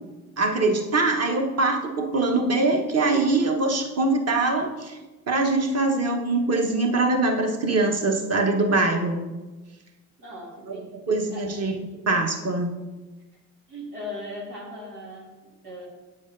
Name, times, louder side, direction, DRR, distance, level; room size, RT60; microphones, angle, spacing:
voice 1, 0.4-5.0 5.3-9.2 10.7-11.7 12.1-12.7, right 2 dB, 35° right, 2 dB, 1.3 m, -23 dB
voice 2, 10.2-10.9 11.3-11.5 13.7-15.9, left 1 dB, 85° right, -3 dB, 1.9 m, -38 dB
8.6 x 7.0 x 2.7 m, 1.2 s
hypercardioid pair, 55°, 46 cm